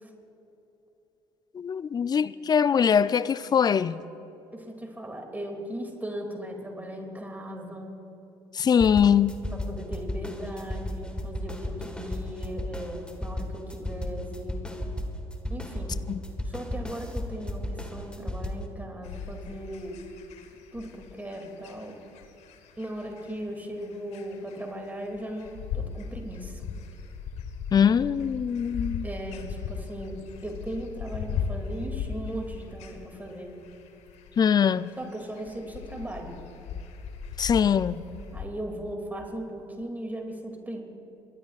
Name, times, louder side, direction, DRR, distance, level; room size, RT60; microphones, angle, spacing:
voice 1, 1.5-4.0 8.5-9.3 16.1-16.2 27.7-29.1 34.4-34.9 37.4-38.0, left 7 dB, 35° left, 0.4 m, -22 dB
voice 2, 4.5-7.9 9.5-14.7 15.5-15.9 16.4-20.0 20.5-22.0 22.8-26.7 29.0-33.5 35.0-36.3 38.3-40.8, equal, 15° right, 2.5 m, -38 dB
sound 1, 8.8-18.7, left 1 dB, 10° left, 1.5 m, -34 dB
sound 2, 19.0-38.4, left 6 dB, 65° left, 1.2 m, -38 dB
29.0 x 12.5 x 2.4 m
hypercardioid pair, 60°, 12 cm